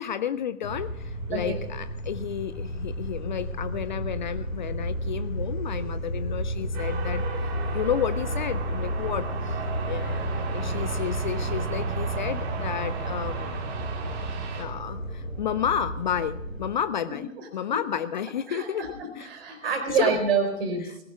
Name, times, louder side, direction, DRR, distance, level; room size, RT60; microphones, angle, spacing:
voice 1, 0.0-9.6 9.9-13.7 14.6-18.8 19.2-19.3 19.6-20.1 20.8-21.1, left 9 dB, 35° left, 14 dB, 0.5 m, -31 dB
sound 1, 0.6-16.7, right 1 dB, 80° left, 7.2 m, -32 dB
sound 2, 6.7-14.6, right 4 dB, 25° right, 2.6 m, -36 dB
voice 2, 18.5-20.9, right 5 dB, 45° right, 6 dB, 4.3 m, -27 dB
19.0 x 16.5 x 3.6 m, 0.88 s
figure-of-eight pair, 115°, 40 cm